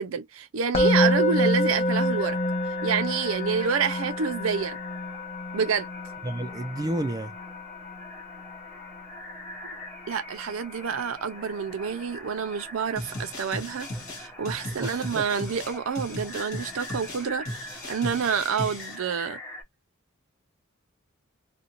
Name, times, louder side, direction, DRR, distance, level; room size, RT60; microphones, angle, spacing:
voice 1, 0.0-2.4 2.8-4.8 5.5-5.9 10.1-13.9 14.2-17.4 17.9-19.4, right 6 dB, 70° right, 0.5 m, -28 dB
Musical instrument, 0.7-11.9, left 1 dB, 30° left, 0.6 m, -29 dB
sound 1, 1.8-19.6, equal, 5° left, 1.0 m, -45 dB
voice 2, 6.2-7.3 14.7-15.2, right 1 dB, 20° right, 0.3 m, -31 dB
sound 2, 13.0-19.0, left 1 dB, 80° left, 1.4 m, -37 dB
2.5 x 2.1 x 2.9 m
head